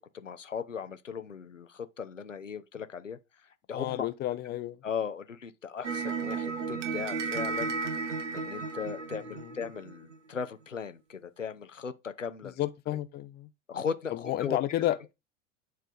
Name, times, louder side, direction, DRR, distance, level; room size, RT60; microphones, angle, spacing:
voice 1, 0.1-3.2 3.7-4.1 4.8-7.8 8.3-12.5 13.7-14.6, left 6 dB, 90° left, 0.6 m, -37 dB
voice 2, 3.7-4.8 9.2-9.5 12.4-13.5 14.1-15.0, left 14 dB, 25° left, 0.6 m, -32 dB
sound 1, 5.8-10.2, right 5 dB, 70° right, 1.0 m, -34 dB
9.2 x 3.4 x 3.8 m
figure-of-eight pair, 80°, 37 cm